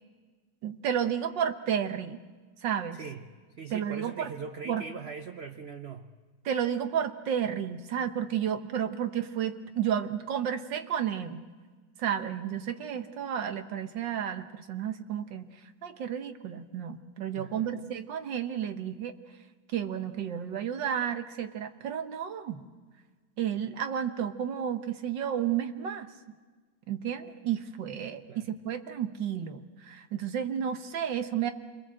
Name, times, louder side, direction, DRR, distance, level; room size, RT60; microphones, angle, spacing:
voice 1, 0.6-2.2 2.6-3.0 3.7-4.3 4.7-4.8 6.5-11.4 12.0-19.2 19.7-22.7 23.4-26.1 26.9-31.5, right 9 dB, 75° right, 8 dB, 1.9 m, -32 dB
voice 2, 2.9-3.3 3.6-6.1 17.4-17.8 28.3-28.4, right 5 dB, 45° right, 7 dB, 0.8 m, -41 dB
29.0 x 21.5 x 7.7 m, 1.4 s
omnidirectional pair, 2.0 m